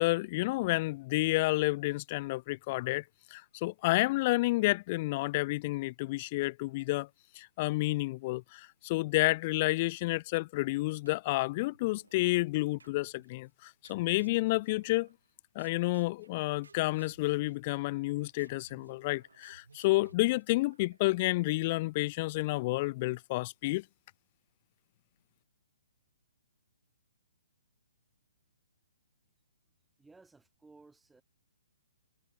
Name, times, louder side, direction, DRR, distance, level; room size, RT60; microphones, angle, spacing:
voice 1, 0.0-3.0 3.3-7.1 7.4-15.1 15.6-23.8, left 21 dB, 35° left, 0.3 m, -30 dB
sound 1, 10.0-10.6 11.0-12.2 12.8-13.3 13.8-15.3 15.6-21.3, right 4 dB, 75° right, 5.9 m, -61 dB
voice 2, 30.0-31.2, right 3 dB, 5° right, 5.4 m, -58 dB
figure-of-eight pair, 130°, 0 cm